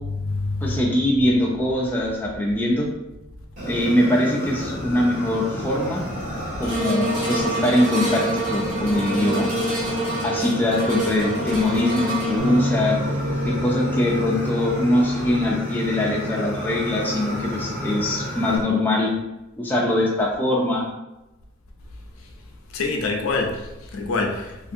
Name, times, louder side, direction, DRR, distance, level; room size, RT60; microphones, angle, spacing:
voice 1, 0.1-0.8 22.7-24.7, left 3 dB, 80° left, 2 dB, 0.5 m, -26 dB
voice 2, 0.6-2.9 3.7-6.0 6.6-9.5 10.2-13.0 13.5-19.1 19.6-20.9, left 1 dB, 10° left, -3 dB, 0.3 m, -22 dB
Fire, 3.6-18.6, equal, 45° right, 1.4 m, -32 dB
sound 1, 6.6-17.0 17.6-17.7, equal, 20° right, 1.3 m, -28 dB
Bass guitar, 12.4-18.6, equal, 75° right, 0.5 m, -31 dB
2.6 x 2.5 x 2.6 m, 0.97 s
head